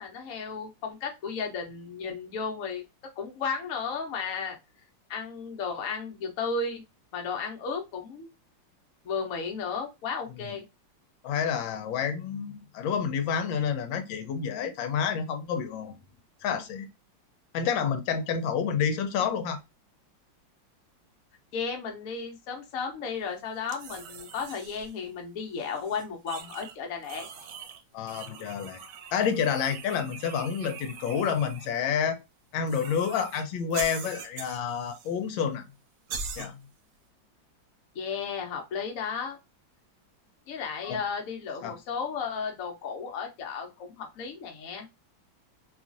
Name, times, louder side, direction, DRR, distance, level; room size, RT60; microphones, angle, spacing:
voice 1, 0.0-2.8 3.2-4.6 5.1-6.8 7.1-8.3 9.0-10.6 21.5-27.3 37.9-39.4 40.5-44.9, left 5 dB, 60° left, 3 dB, 1.0 m, -34 dB
voice 2, 11.2-15.9 16.4-16.9 17.5-19.6 27.9-28.8 29.1-32.2 32.5-35.6 36.4-36.6 40.8-41.0 41.6-41.7, left 7 dB, 80° left, 8 dB, 1.3 m, -29 dB
sound 1, 23.7-24.9 25.6-26.8 27.0-27.8 28.1-31.7 32.7-33.4 33.7-35.2 35.4-35.5 36.1-36.5, right 6 dB, 75° right, 1.2 m, -42 dB
3.0 x 2.4 x 2.4 m, 0.24 s
omnidirectional pair, 2.1 m